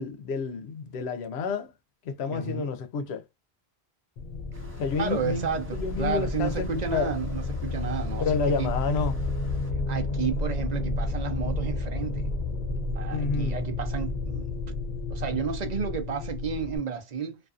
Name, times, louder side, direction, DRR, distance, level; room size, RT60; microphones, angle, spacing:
voice 1, 0.0-1.7 2.1-3.2 4.8-5.5 5.7-7.1 8.2-9.2 13.1-13.6, left 5 dB, 85° left, 0.9 m, -29 dB
voice 2, 2.3-2.7 5.0-8.7 9.9-12.3 12.9-14.5 15.1-17.4, right 6 dB, 50° right, 0.7 m, -32 dB
sound 1, 4.2-16.8, left 2 dB, 60° left, 0.6 m, -31 dB
sound 2, 4.5-9.7, right 1 dB, 15° right, 0.8 m, -52 dB
2.5 x 2.4 x 2.4 m
omnidirectional pair, 1.1 m